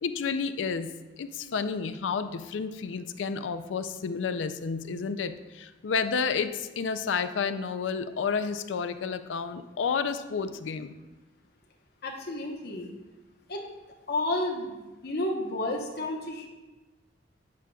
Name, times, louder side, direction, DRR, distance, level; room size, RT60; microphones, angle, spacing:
voice 1, 0.0-10.9, left 5 dB, 85° left, 10 dB, 0.4 m, -31 dB
voice 2, 12.0-12.9 13.5-13.6 14.1-14.7 15.0-16.5, left 1 dB, 60° left, 1 dB, 1.0 m, -31 dB
8.3 x 7.5 x 2.3 m, 1.1 s
head